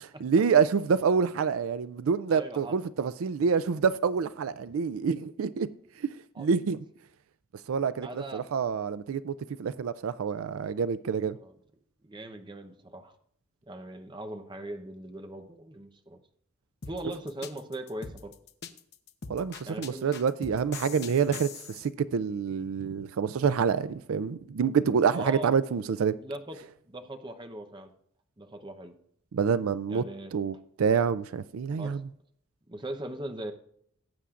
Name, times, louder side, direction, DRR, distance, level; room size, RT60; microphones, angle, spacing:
voice 1, 0.2-5.7 6.4-6.8 7.7-11.4 19.3-26.1 29.3-30.0 30.3-32.0, right 6 dB, 75° right, 0.4 m, -27 dB
voice 2, 2.3-2.8 6.3-6.5 8.0-8.4 11.4-11.6 12.0-13.1 13.7-16.2 16.8-18.3 19.6-20.2 25.1-25.5 25.9-26.6 26.9-27.9 28.4-29.0 29.9-30.3 31.8-31.9 32.7-33.5, right 1 dB, 20° right, 0.8 m, -40 dB
sound 1, 16.8-21.9, left 6 dB, 50° left, 0.8 m, -42 dB
18.5 x 8.3 x 2.5 m
head